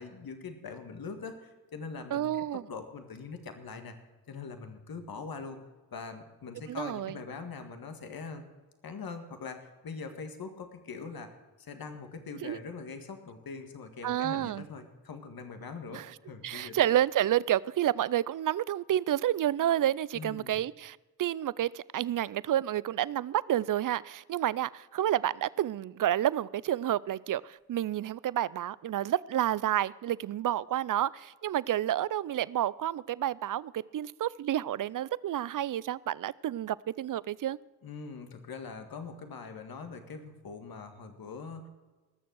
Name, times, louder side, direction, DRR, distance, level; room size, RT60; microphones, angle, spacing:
voice 1, 0.0-4.0 4.3-5.6 5.9-8.5 8.8-16.8 20.1-20.6 37.8-41.7, left 4 dB, 70° left, 6 dB, 1.7 m, -42 dB
voice 2, 2.1-2.6 6.7-7.2 12.4-12.6 14.0-14.7 15.9-16.1 16.4-37.6, right 12 dB, 55° right, 21 dB, 0.5 m, -30 dB
19.0 x 6.9 x 6.2 m, 1.2 s
supercardioid pair, 45°, 38 cm